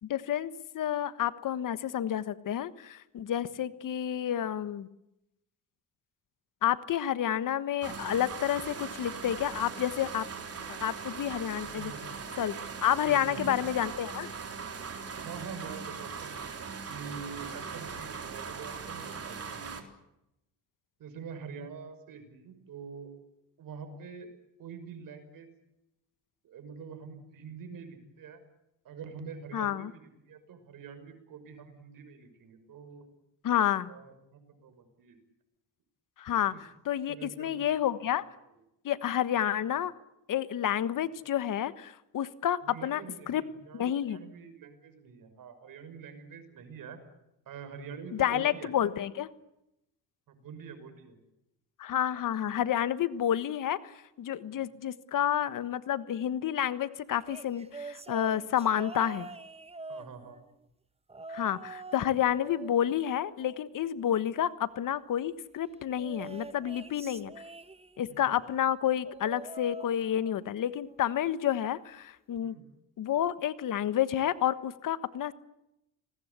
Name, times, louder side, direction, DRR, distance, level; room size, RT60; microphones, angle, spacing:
voice 1, 0.0-4.9 6.6-10.3 10.7-11.9 12.4-12.5 12.8-14.3 29.5-29.9 33.4-33.9 36.2-36.5 36.8-38.3 38.8-39.9 40.3-43.0 43.3-43.4 43.7-44.2 48.2-49.3 51.8-59.3 61.3-67.3 68.0-72.5 73.0-75.3, left 10 dB, 65° left, 14 dB, 1.4 m, -30 dB
sound 1, 7.8-19.8, right 5 dB, 45° right, 3.9 m, -40 dB
voice 2, 11.6-12.2 13.0-13.6 15.1-16.5 16.9-19.7 21.0-23.1 23.6-24.3 24.6-25.5 26.4-28.4 28.8-33.1 33.9-35.2 36.5-36.6 37.1-37.6 38.5-38.6 42.6-47.0 47.5-48.7 50.3-51.2 54.5-54.6 59.9-60.4 68.1-68.3 72.4-72.6, right 6 dB, 70° right, 9 dB, 6.0 m, -45 dB
sound 2, 57.2-60.6 61.1-62.1 62.4-63.9 66.0-68.2 69.0-70.5 70.9-71.2 72.4-72.5, right 3 dB, 15° right, 1.2 m, -45 dB
27.5 x 20.0 x 8.3 m, 0.87 s
cardioid pair, 85°, 34 cm